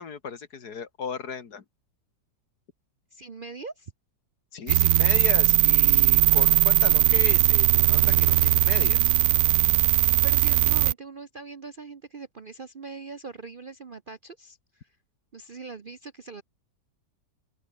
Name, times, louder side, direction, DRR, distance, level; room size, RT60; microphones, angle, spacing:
voice 1, 0.0-1.6 4.5-9.1, left 6 dB, 60° left, 2.3 m, -36 dB
voice 2, 3.1-3.9 10.2-14.9 15.3-16.4, right 4 dB, 40° right, 0.8 m, -41 dB
sound 1, 4.7-10.9, right 16 dB, 70° right, 0.9 m, -20 dB
open air
omnidirectional pair, 1.9 m